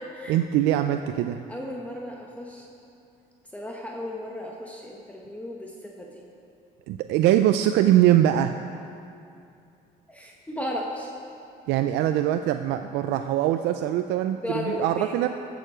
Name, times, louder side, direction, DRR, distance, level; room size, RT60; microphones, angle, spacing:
voice 1, 0.3-1.4 6.9-8.6 11.7-15.3, right 12 dB, 85° right, 8 dB, 0.4 m, -22 dB
voice 2, 1.5-2.7 3.5-6.2 10.1-11.1 14.4-15.2, left 1 dB, 10° left, -2 dB, 1.1 m, -35 dB
15.5 x 6.8 x 5.0 m, 2.5 s
cardioid pair, 110°, 17 cm